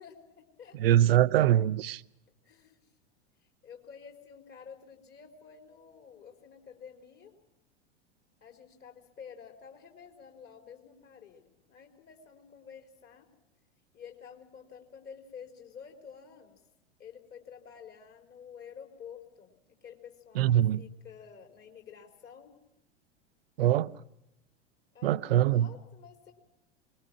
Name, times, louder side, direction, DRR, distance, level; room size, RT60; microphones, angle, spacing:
voice 1, 0.0-1.0 2.4-2.8 3.4-7.3 8.4-13.3 13.9-16.6 17.0-22.5 24.9-26.3, left 7 dB, 30° left, 4.2 m, -50 dB
voice 2, 0.8-2.0 20.4-20.8 23.6-23.9 25.0-25.7, right 12 dB, 60° right, 0.8 m, -23 dB
25.0 x 21.5 x 6.1 m
figure-of-eight pair, 85°, 34 cm